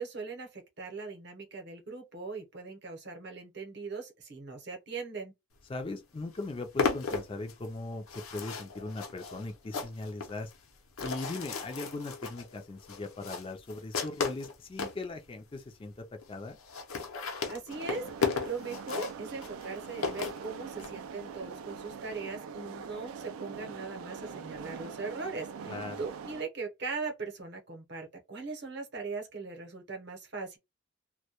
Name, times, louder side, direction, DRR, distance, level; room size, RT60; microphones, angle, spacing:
voice 1, 0.0-5.3 17.5-30.6, right 4 dB, 50° right, 0.8 m, -40 dB
voice 2, 5.7-10.5 11.0-16.6 25.7-26.0, left 2 dB, 25° left, 0.3 m, -39 dB
sound 1, 5.8-5.9 6.2-15.0 15.6-15.7 15.9-16.0 16.2-16.3 16.5-20.9, left 5 dB, 80° left, 0.6 m, -35 dB
sound 2, 17.7-26.4, right 6 dB, 85° right, 0.3 m, -43 dB
2.1 x 2.1 x 2.8 m
head